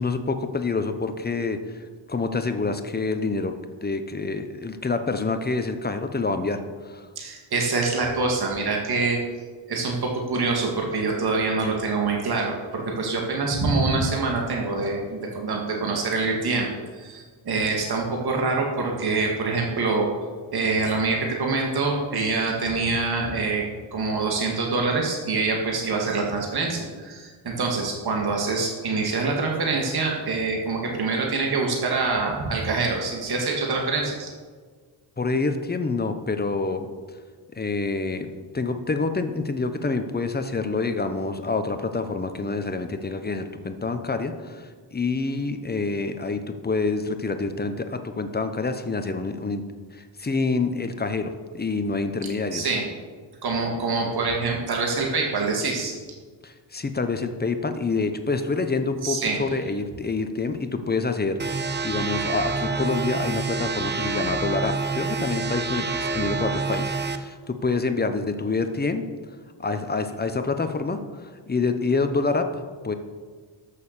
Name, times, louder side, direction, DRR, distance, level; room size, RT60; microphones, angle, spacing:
voice 1, 0.0-3.5 3.8-7.1 35.2-36.9 37.5-49.6 49.9-52.7 56.4-69.0 69.6-72.9, left 3 dB, 20° left, 8 dB, 0.9 m, -27 dB
voice 2, 7.2-9.2 9.7-16.7 17.0-20.1 20.5-23.6 23.9-34.3 52.5-52.9 53.4-55.9 59.0-59.4, right 3 dB, 50° right, 0 dB, 1.9 m, -25 dB
sound 1, 61.4-67.2, right 4 dB, 25° right, 0.6 m, -27 dB
13.0 x 6.7 x 6.6 m, 1.5 s
wide cardioid pair, 130°, 48 cm